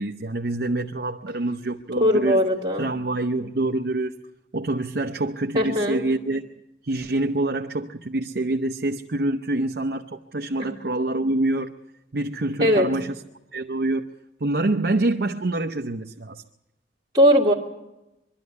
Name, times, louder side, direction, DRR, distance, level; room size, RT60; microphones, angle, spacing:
voice 1, 0.0-2.4 2.8-4.2 4.5-6.5 6.8-11.7 12.1-13.2 13.5-14.1 14.4-16.4, right 2 dB, 60° right, 0.8 m, -26 dB
voice 2, 2.0-2.9 5.5-6.0 10.6-10.8 12.6-12.9 17.1-17.5, equal, 20° right, 2.0 m, -19 dB
23.5 x 12.5 x 9.5 m
head